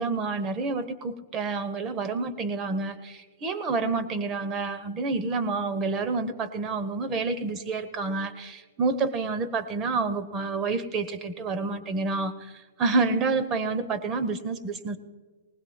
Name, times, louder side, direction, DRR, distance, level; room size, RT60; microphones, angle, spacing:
voice 1, 0.0-15.0, right 3 dB, 25° right, 10 dB, 1.2 m, -28 dB
20.0 x 19.5 x 2.4 m, 1.4 s
hypercardioid pair, 120°, 0 cm